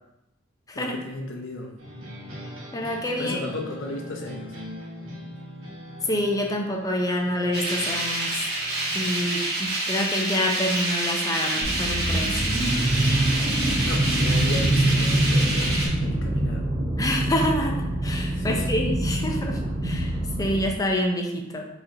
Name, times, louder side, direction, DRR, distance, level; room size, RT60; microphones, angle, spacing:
voice 1, 0.7-1.7 3.2-4.5 13.8-16.6 18.3-18.7, left 2 dB, 65° left, 1 dB, 0.7 m, -34 dB
sound 1, 1.8-10.3 11.5-15.8, equal, 80° right, 1.1 m, -43 dB
voice 2, 2.7-3.4 6.1-8.4 8.9-12.4 17.0-21.7, left 1 dB, 20° left, 1 dB, 0.5 m, -27 dB
sound 2, 7.5-15.9, right 2 dB, 55° right, 1.2 m, -27 dB
sound 3, 11.6-20.7, right 1 dB, 25° right, 0.5 m, -24 dB
5.0 x 2.9 x 2.5 m, 0.90 s
head